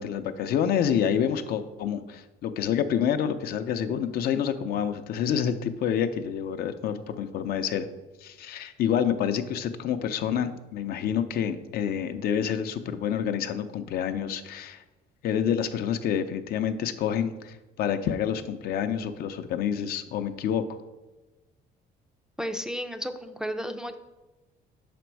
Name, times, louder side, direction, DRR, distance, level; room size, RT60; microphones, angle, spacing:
voice 1, 0.0-7.9 8.2-14.8 15.2-20.6, left 8 dB, 65° left, 9 dB, 0.5 m, -28 dB
voice 2, 22.4-23.9, equal, 5° right, 6 dB, 0.4 m, -33 dB
6.1 x 5.1 x 4.5 m, 1.1 s
cardioid pair, 110°, 17 cm